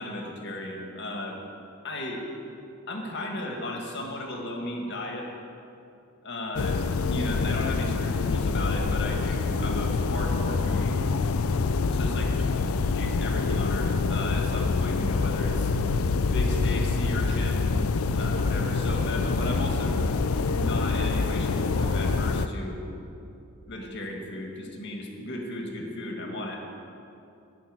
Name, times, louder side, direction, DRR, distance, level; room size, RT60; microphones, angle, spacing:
voice 1, 0.0-1.4 1.8-2.2 2.9-5.3 6.2-11.0 11.9-15.7 16.3-17.8 18.2-20.1 20.5-22.8 23.7-26.6, left 1 dB, 50° left, 1 dB, 1.8 m, -35 dB
sound 1, 6.6-22.5, left 4 dB, 70° left, 0.5 m, -26 dB
13.5 x 6.1 x 8.7 m, 2.7 s
head